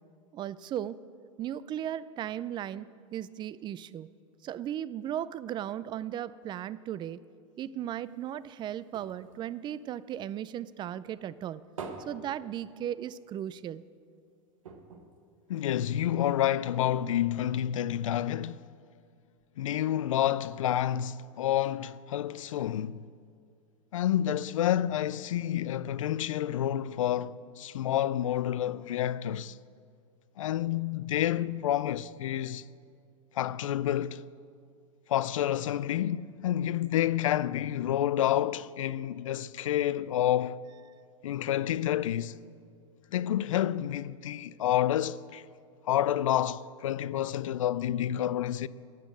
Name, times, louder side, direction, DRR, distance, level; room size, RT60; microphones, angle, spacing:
voice 1, 0.3-1.0 1.4-4.1 4.4-7.2 7.6-11.6 12.1-13.8, right 11 dB, 30° right, 0.4 m, -36 dB
sound 1, 8.0-10.7 11.0-13.3 13.6-13.7 14.0-14.2 14.6-16.1 16.8-16.9, right 4 dB, 90° right, 1.4 m, -47 dB
voice 2, 15.5-18.7 19.6-23.1 23.9-29.6 30.4-32.6 33.4-34.2 35.1-40.6 41.2-42.4 43.1-45.4 45.9-48.7, left 11 dB, 85° left, 0.4 m, -29 dB
12.0 x 8.9 x 7.4 m
hypercardioid pair, 110°, 16 cm